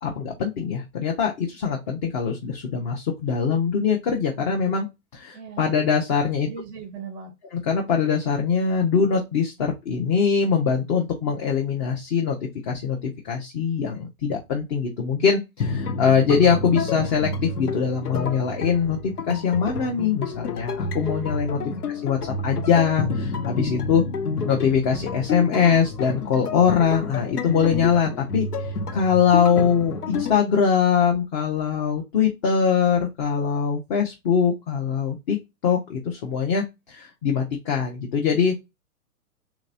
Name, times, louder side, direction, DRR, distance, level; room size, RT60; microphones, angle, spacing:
voice 1, 0.0-4.9 5.1-6.5 7.5-12.4 12.7-21.6 22.0-24.0 24.4-35.4 35.6-38.5, left 6 dB, 30° left, 0.8 m, -22 dB
voice 2, 5.3-5.6 6.4-7.3 21.5-21.8, right 5 dB, 10° right, 0.6 m, -38 dB
sound 1, 15.6-30.4, left 4 dB, 85° left, 0.8 m, -29 dB
3.4 x 2.9 x 2.5 m
hypercardioid pair, 120°, 45 cm